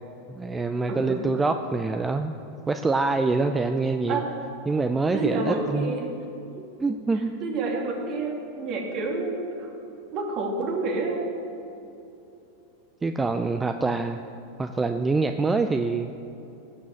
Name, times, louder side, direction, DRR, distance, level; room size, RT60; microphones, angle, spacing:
voice 1, 0.3-2.4 2.7-4.2 4.7-5.9 6.8-7.4 13.0-14.2 14.6-16.1, right 3 dB, 15° right, 7 dB, 0.6 m, -25 dB
voice 2, 0.9-1.3 4.1-4.3 5.1-6.1 6.6-6.7 7.4-9.7 10.1-11.2, right 3 dB, 45° right, 0 dB, 2.7 m, -29 dB
17.0 x 6.3 x 7.1 m, 2.8 s
hypercardioid pair, 90°, 0 cm